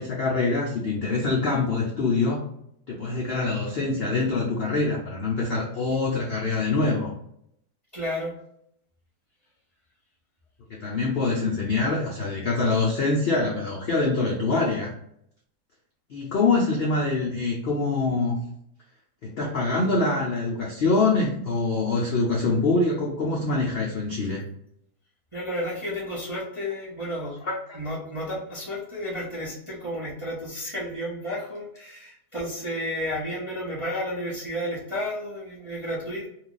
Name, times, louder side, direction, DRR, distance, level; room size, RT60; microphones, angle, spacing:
voice 1, 0.0-2.5 2.9-7.1 10.7-14.9 16.1-18.4 19.2-24.4 27.4-27.5, left 3 dB, 85° left, -2 dB, 0.5 m, -24 dB
voice 2, 7.9-8.3 25.3-27.4 27.7-36.3, equal, 45° right, -7 dB, 0.4 m, -32 dB
2.7 x 2.3 x 3.8 m, 0.74 s
omnidirectional pair, 1.7 m